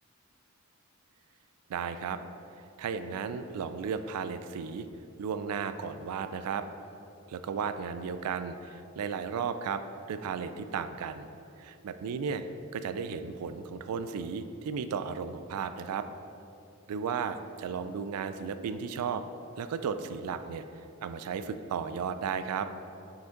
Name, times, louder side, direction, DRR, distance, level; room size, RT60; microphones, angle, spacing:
voice 1, 1.7-2.2 2.8-4.9 5.2-6.7 7.3-9.8 10.1-11.3 11.6-12.4 12.7-16.1 16.9-19.2 19.6-20.6 21.0-22.7, right 6 dB, 85° right, 11 dB, 0.3 m, -34 dB
5.9 x 5.1 x 3.7 m, 2.7 s
head